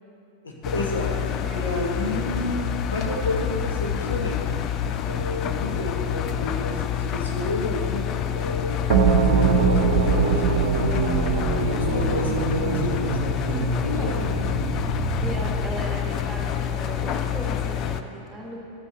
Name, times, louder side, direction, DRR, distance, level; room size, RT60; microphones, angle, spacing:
voice 1, 0.4-2.6 2.9-4.4 5.1-8.1 8.3-8.8 9.2-11.1 11.5-13.3 13.8-14.3, left 2 dB, 70° left, -1 dB, 1.2 m, -31 dB
Engine, 0.6-18.0, left 9 dB, 35° left, 0.4 m, -27 dB
sound 1, 8.9-15.8, right 5 dB, 55° right, 0.7 m, -23 dB
voice 2, 13.5-14.1 15.2-18.6, right 1 dB, 5° right, -3 dB, 1.7 m, -36 dB
13.0 x 8.1 x 3.0 m, 2.8 s
figure-of-eight pair, 90°, 0 cm